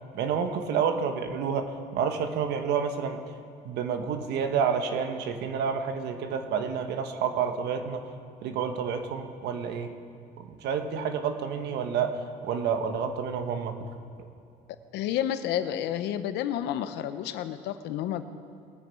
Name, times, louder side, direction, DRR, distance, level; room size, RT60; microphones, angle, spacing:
voice 1, 0.1-3.2 3.6-8.1 8.4-9.9 10.4-13.7, right 6 dB, 80° right, 7 dB, 1.2 m, -29 dB
voice 2, 14.9-18.2, left 11 dB, 85° left, 11 dB, 0.8 m, -30 dB
21.0 x 9.3 x 4.5 m, 2.4 s
cardioid pair, 110°, 17 cm